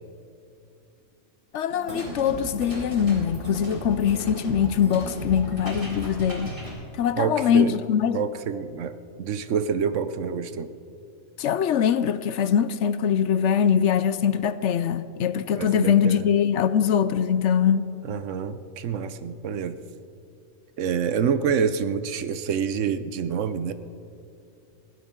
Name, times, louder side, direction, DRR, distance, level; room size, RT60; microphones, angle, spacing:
voice 1, 1.5-6.6 7.0-8.2 11.4-17.8, left 8 dB, 70° left, 0.8 m, -22 dB
sound 1, 1.7-6.7, right 1 dB, 40° right, 4.0 m, -35 dB
voice 2, 7.2-7.8 8.1-10.7 15.6-16.3 18.0-19.8 20.8-23.7, right 7 dB, 70° right, 1.0 m, -27 dB
21.0 x 16.5 x 3.7 m
omnidirectional pair, 1.4 m